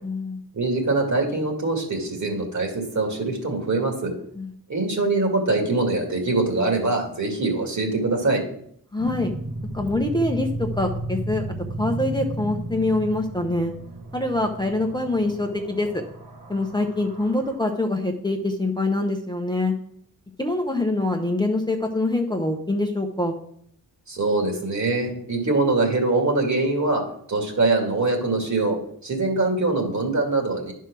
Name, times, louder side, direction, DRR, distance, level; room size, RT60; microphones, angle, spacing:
voice 1, 0.0-0.4 4.4-4.5 8.9-9.3 9.7-11.5 11.8-13.7 14.1-16.0 16.5-19.7 20.4-23.4, left 2 dB, 10° left, 2 dB, 0.7 m, -24 dB
voice 2, 0.5-4.1 4.7-8.4 24.1-27.0 27.3-30.7, right 3 dB, 50° right, 2 dB, 2.1 m, -23 dB
sound 1, 9.0-17.5, right 1 dB, 65° right, 1.3 m, -33 dB
11.0 x 4.6 x 6.0 m, 0.67 s
wide cardioid pair, 150°, 37 cm